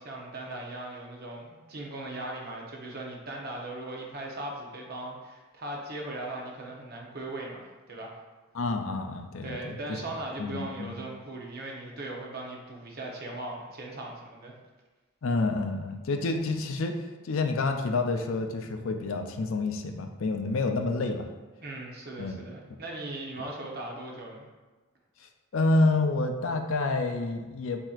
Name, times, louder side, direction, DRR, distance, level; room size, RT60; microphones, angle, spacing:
voice 1, 0.0-8.2 9.4-14.6 21.6-24.4, right 2 dB, 45° right, -1 dB, 0.8 m, -39 dB
voice 2, 8.5-10.0 10.4-10.9 15.2-16.9 17.2-21.3 22.2-22.4 25.5-27.8, left 3 dB, 65° left, 5 dB, 0.4 m, -28 dB
7.4 x 2.8 x 2.4 m, 1.2 s
head